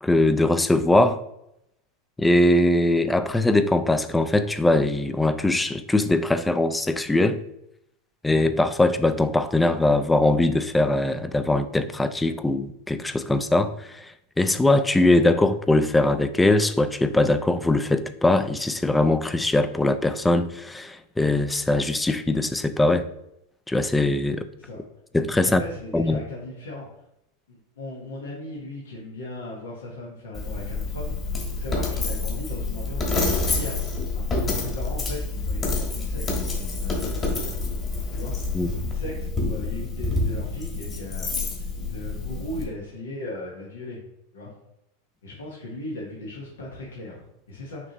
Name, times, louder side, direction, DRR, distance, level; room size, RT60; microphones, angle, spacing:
voice 1, 0.0-1.2 2.2-7.4 8.2-23.1 23.7-24.5 25.1-25.6 25.9-26.2 38.5-38.7, left 2 dB, 10° left, 12 dB, 0.4 m, -21 dB
voice 2, 25.5-26.9 27.5-33.8 34.1-37.4 38.1-38.5 38.8-41.3 41.6-44.0 44.3-44.5 45.2-47.9, left 1 dB, 90° left, -4 dB, 1.2 m, -38 dB
Coin (dropping), 30.3-42.6, left 3 dB, 25° left, 1.4 m, -28 dB
5.8 x 3.1 x 3.0 m, 0.80 s
hypercardioid pair, 110°, 0 cm